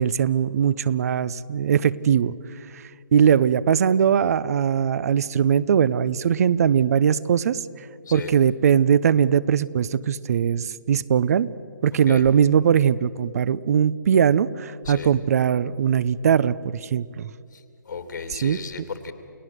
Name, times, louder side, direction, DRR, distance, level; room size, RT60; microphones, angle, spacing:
voice 1, 0.0-2.3 2.7-2.8 3.1-11.5 11.8-17.3 18.3-18.6, right 8 dB, 50° right, 18 dB, 0.7 m, -20 dB
voice 2, 17.5-19.1, left 5 dB, 65° left, 8 dB, 2.9 m, -35 dB
29.5 x 17.0 x 7.9 m, 2.4 s
hypercardioid pair, 145°, 11 cm